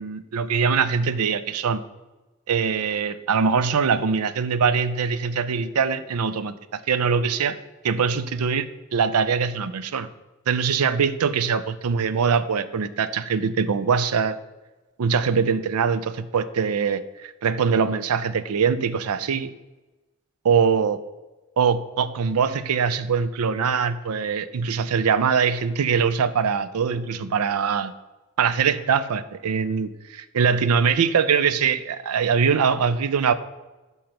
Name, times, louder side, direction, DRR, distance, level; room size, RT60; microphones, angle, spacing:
voice 1, 0.0-1.8 2.5-7.5 7.8-8.7 8.9-10.1 10.5-14.4 15.0-19.5 20.5-21.0 21.6-27.9 28.4-33.3, right 6 dB, 90° right, 14 dB, 0.5 m, -22 dB
6.7 x 5.3 x 5.9 m, 1.1 s
head